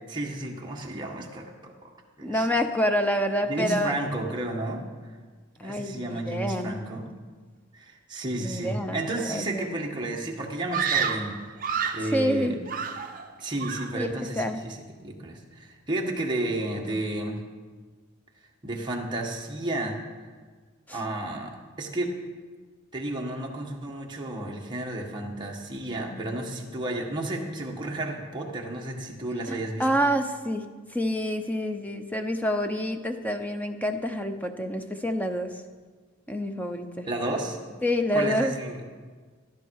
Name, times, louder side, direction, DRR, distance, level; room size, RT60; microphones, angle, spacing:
voice 1, 0.1-1.9 2.2-2.5 3.5-4.8 5.6-7.1 7.7-11.5 11.9-12.6 13.4-17.4 18.6-20.0 20.9-22.2 22.9-29.8 37.1-37.7 38.1-38.8, right 1 dB, 20° right, -2 dB, 1.6 m, -32 dB
voice 2, 2.2-3.9 5.6-6.8 8.4-9.6 12.0-12.6 13.9-14.1 14.4-14.6 20.9-21.0 29.5-35.6 36.3-37.1 37.8-38.5, equal, 5° left, 6 dB, 0.7 m, -28 dB
Screaming, 10.7-12.1 12.7-13.3 13.6-14.0, right 6 dB, 40° right, 0.7 m, -29 dB
14.0 x 12.0 x 4.8 m, 1.5 s
head